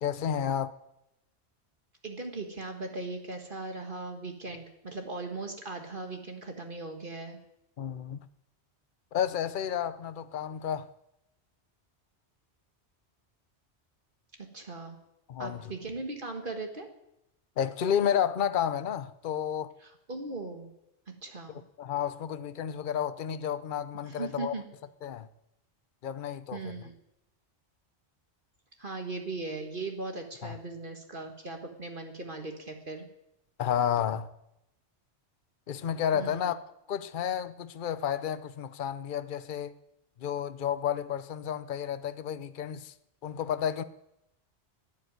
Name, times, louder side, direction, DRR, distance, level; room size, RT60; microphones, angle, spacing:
voice 1, 0.0-0.7 7.8-8.2 9.1-10.9 15.3-15.7 17.6-19.7 21.8-24.5 25.0-25.3 26.0-26.7 30.4-30.6 33.6-34.3 35.7-36.6 36.9-39.7 40.2-42.9 43.2-43.8, left 9 dB, 50° left, 0.8 m, -31 dB
voice 2, 2.0-7.4 14.5-15.0 15.4-16.9 19.8-20.7 21.2-21.6 24.1-24.6 26.5-26.9 28.8-33.1 36.1-36.5, right 3 dB, 50° right, 1.9 m, -38 dB
12.5 x 10.5 x 9.4 m
omnidirectional pair, 1.2 m